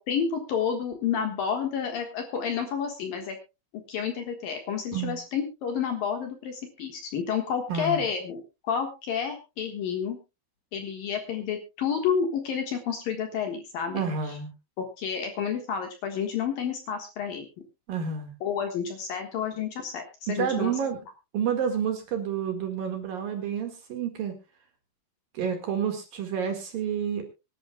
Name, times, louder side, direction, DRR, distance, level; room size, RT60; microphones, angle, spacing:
voice 1, 0.0-3.4 3.9-10.2 10.7-14.4 14.8-17.5 18.4-20.7, left 7 dB, 60° left, 4 dB, 2.7 m, -30 dB
voice 2, 7.7-8.0 13.9-14.5 17.9-18.3 20.3-21.0 21.3-24.4 25.3-27.2, right 7 dB, 55° right, 4 dB, 3.0 m, -29 dB
24.5 x 11.5 x 2.3 m, 0.27 s
omnidirectional pair, 5.5 m